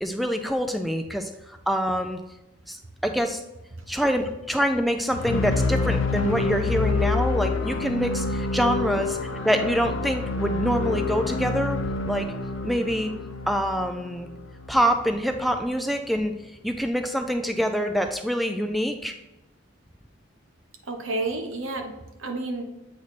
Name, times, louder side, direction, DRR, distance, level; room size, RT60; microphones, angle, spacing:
voice 1, 0.0-2.2 2.7-3.4 3.9-12.3 12.6-13.1 13.5-14.3 14.7-16.3 16.6-19.1, equal, ahead, 5 dB, 0.3 m, -25 dB
sound 1, 5.1-15.1, left 3 dB, 80° left, 0.6 m, -27 dB
voice 2, 20.8-22.6, right 2 dB, 85° right, 4 dB, 1.0 m, -31 dB
8.4 x 3.1 x 4.1 m, 0.96 s
head